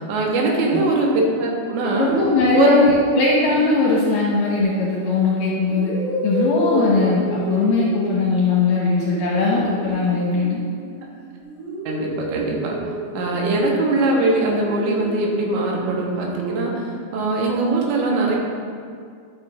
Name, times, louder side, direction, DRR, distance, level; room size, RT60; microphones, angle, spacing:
voice 1, 0.0-2.1 2.5-2.8 11.9-12.8 13.1-16.9 17.1-18.4, right 2 dB, 85° right, -1 dB, 3.3 m, -21 dB
voice 2, 2.0-5.9 6.2-10.6, left 3 dB, 70° left, -5 dB, 2.1 m, -19 dB
sound 1, 4.6-4.9 5.7-11.0 11.4-15.4, equal, 40° right, 2.6 m, -30 dB
12.0 x 6.8 x 2.4 m, 2.2 s
omnidirectional pair, 5.1 m